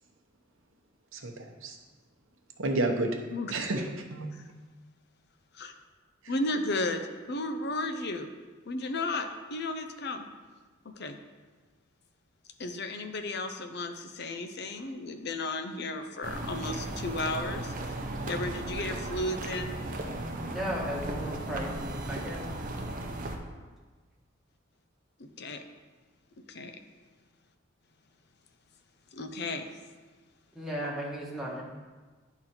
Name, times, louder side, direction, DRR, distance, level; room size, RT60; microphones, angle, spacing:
voice 1, 1.1-1.8 2.6-3.2 3.5-4.3, right 2 dB, 80° right, 3 dB, 0.9 m, -30 dB
voice 2, 6.3-7.0 7.3-8.3 8.7-10.3 10.8-11.2 12.6-17.7 18.3-19.7 25.4-25.6 26.5-26.7 29.1-29.7, left 2 dB, 55° left, 7 dB, 0.7 m, -34 dB
sound 1, 16.2-23.4, right 1 dB, 40° right, 0.8 m, -36 dB
voice 3, 20.5-22.5 30.5-31.6, equal, ahead, -5 dB, 1.4 m, -35 dB
10.5 x 3.9 x 4.4 m, 1.3 s
head